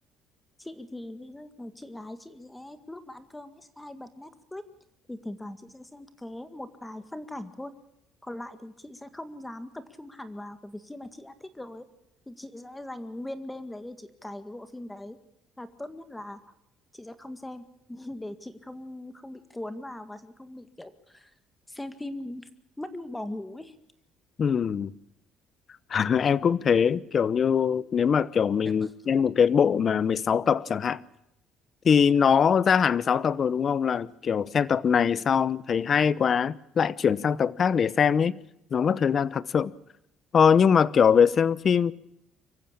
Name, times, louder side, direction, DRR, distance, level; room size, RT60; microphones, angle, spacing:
voice 1, 0.6-4.6 5.1-7.7 8.2-11.9 12.3-15.2 15.6-16.4 16.9-21.3 21.7-22.5 22.8-23.7 28.6-29.1, left 1 dB, 10° left, 1.8 m, -40 dB
voice 2, 24.4-24.9 25.9-31.0 31.8-38.3 38.7-39.7 40.3-41.9, left 7 dB, 45° left, 0.9 m, -22 dB
25.0 x 15.0 x 8.7 m
cardioid pair, 95°, 0 cm